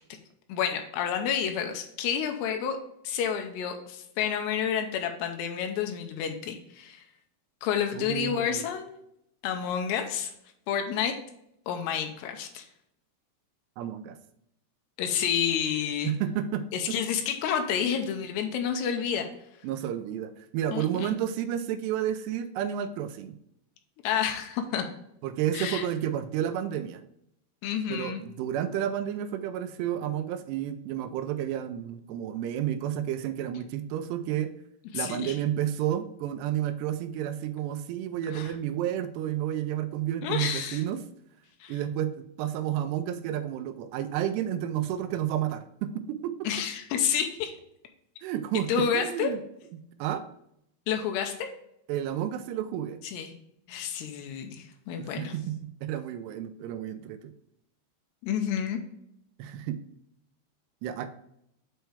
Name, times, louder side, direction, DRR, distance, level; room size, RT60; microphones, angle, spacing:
voice 1, 0.5-2.8 3.0-7.0 7.6-8.9 9.4-10.3 10.7-11.2 11.7-12.7 15.0-16.1 16.7-19.3 20.7-21.1 24.0-24.8 25.5-25.9 27.6-28.2 34.9-35.4 38.3-38.5 40.2-40.8 41.6-41.8 46.4-47.5 48.7-49.3 50.9-51.5 53.0-53.3 53.7-55.3 58.2-58.8, left 8 dB, 90° left, 5 dB, 2.8 m, -29 dB
voice 2, 7.9-8.6 13.8-14.2 16.0-16.7 19.6-23.4 25.2-27.0 27.9-34.5 34.9-41.0 41.7-46.4 48.2-49.4 50.0-50.3 51.9-53.0 55.0-55.6 55.8-57.3 59.4-59.8 60.8-61.1, right 10 dB, 85° right, 10 dB, 2.7 m, -31 dB
8.0 x 4.5 x 3.3 m, 0.76 s
omnidirectional pair, 4.8 m